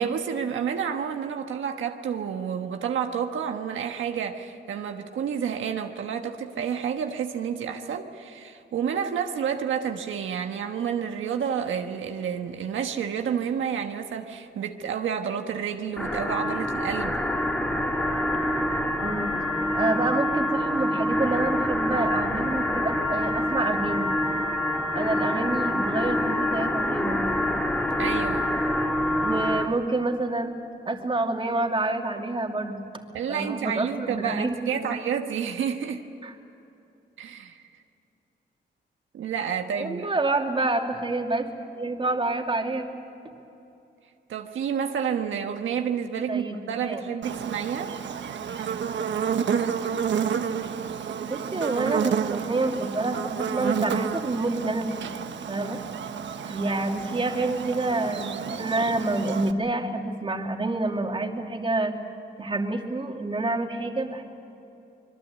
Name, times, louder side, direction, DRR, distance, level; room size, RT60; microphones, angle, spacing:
voice 1, 0.0-17.2 28.0-28.5 33.1-36.0 37.2-37.6 39.1-40.1 44.3-47.9, right 7 dB, 90° right, 4 dB, 1.3 m, -29 dB
sound 1, 16.0-29.7, left 1 dB, 5° left, 2.3 m, -26 dB
voice 2, 19.0-19.3 19.7-24.1 24.9-27.4 29.2-30.5 30.9-32.8 33.3-35.0 36.2-36.4 39.8-41.5 41.7-42.9 46.3-46.6 46.9-47.0 51.3-55.1 55.5-55.8 56.4-61.9 62.4-64.2, right 2 dB, 25° right, 2 dB, 2.6 m, -28 dB
Buzz, 47.2-59.5, right 7 dB, 70° right, 1.2 m, -30 dB
25.0 x 22.0 x 8.3 m, 2.8 s
cardioid pair, 90°, 20 cm